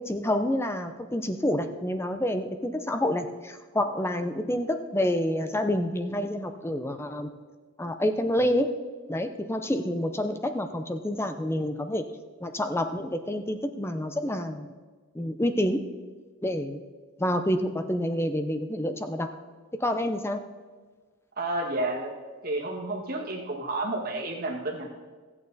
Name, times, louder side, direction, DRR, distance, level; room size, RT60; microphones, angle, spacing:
voice 1, 0.0-7.3 7.8-8.7 9.1-12.0 12.4-14.7 15.1-15.8 16.4-16.8 17.2-19.3 19.8-20.4, left 1 dB, 10° left, 8 dB, 0.5 m, -28 dB
voice 2, 21.4-22.1 22.4-24.9, right 2 dB, 45° right, 0 dB, 1.6 m, -30 dB
14.0 x 8.7 x 4.1 m, 1.4 s
head